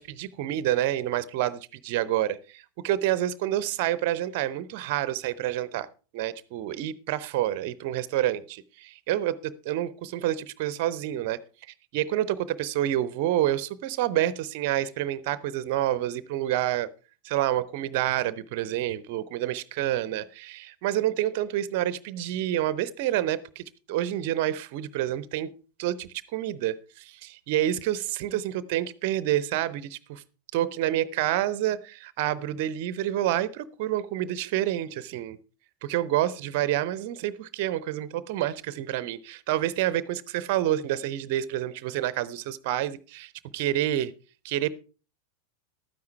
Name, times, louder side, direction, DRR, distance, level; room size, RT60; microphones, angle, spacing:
voice 1, 0.0-5.9 6.1-8.6 9.1-11.4 11.9-16.9 17.2-25.5 25.8-30.2 30.5-35.4 35.8-44.1 44.4-44.7, right 13 dB, 45° right, 0.7 m, -28 dB
12.5 x 9.5 x 4.6 m
figure-of-eight pair, 90°, 0 cm